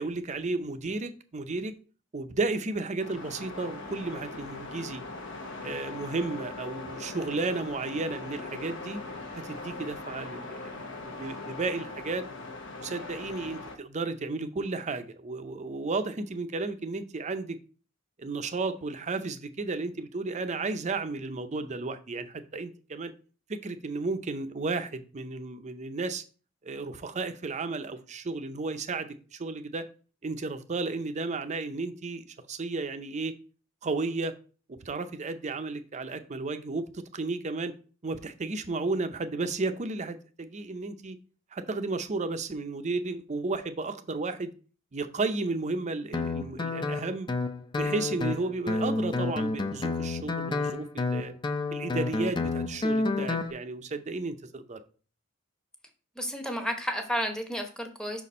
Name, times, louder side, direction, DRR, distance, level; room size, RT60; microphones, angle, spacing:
voice 1, 0.0-1.7 2.1-5.0 5.6-9.0 9.3-10.7 11.0-12.3 12.8-17.6 18.2-23.1 23.5-26.2 26.6-29.8 30.2-33.3 33.8-34.3 34.7-37.7 38.0-41.2 41.5-44.5 44.9-47.3 47.8-51.3 51.7-54.8, right 3 dB, 35° right, 10 dB, 0.6 m, -33 dB
sound 1, 3.0-13.8, left 3 dB, 65° left, 0.9 m, -40 dB
Guitar, 46.1-53.5, left 3 dB, 20° left, 0.5 m, -30 dB
voice 2, 56.2-58.2, equal, 5° left, 4 dB, 0.9 m, -32 dB
5.8 x 4.2 x 4.2 m, 0.38 s
head